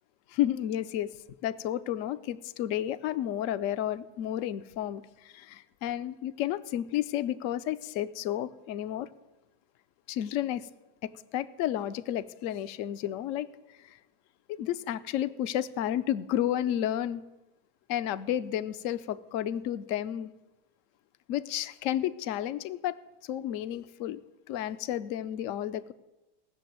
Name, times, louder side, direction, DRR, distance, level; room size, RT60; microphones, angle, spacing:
voice 1, 0.3-1.1 1.4-9.1 10.1-10.7 11.0-13.5 13.9-14.0 14.5-17.2 17.9-20.3 21.3-24.2 24.5-25.9, left 11 dB, 65° left, 14 dB, 0.8 m, -32 dB
16.5 x 6.8 x 9.3 m, 1.0 s
omnidirectional pair, 1.8 m